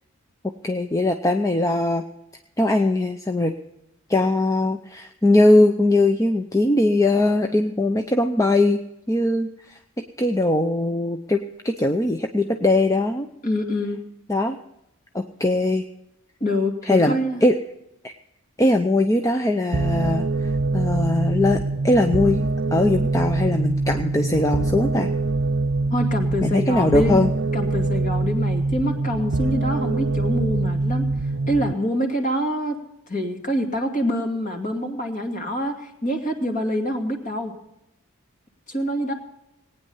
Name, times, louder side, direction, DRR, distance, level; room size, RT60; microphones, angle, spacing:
voice 1, 0.6-2.0 2.6-3.5 4.1-8.8 9.1-9.8 10.2-13.3 14.3-14.6 15.1-15.8 16.8-17.6 18.0-18.1 18.6-22.5 22.7-25.1 26.4-27.3, left 2 dB, 15° left, 5 dB, 0.6 m, -20 dB
voice 2, 13.4-14.0 16.4-17.4 25.9-27.2 27.5-31.1 31.5-32.8 33.1-37.5 38.7-39.1, equal, 35° left, 3 dB, 2.3 m, -25 dB
sound 1, 19.7-31.7, right 2 dB, 55° right, 0.6 m, -24 dB
19.0 x 9.4 x 5.5 m, 0.85 s
head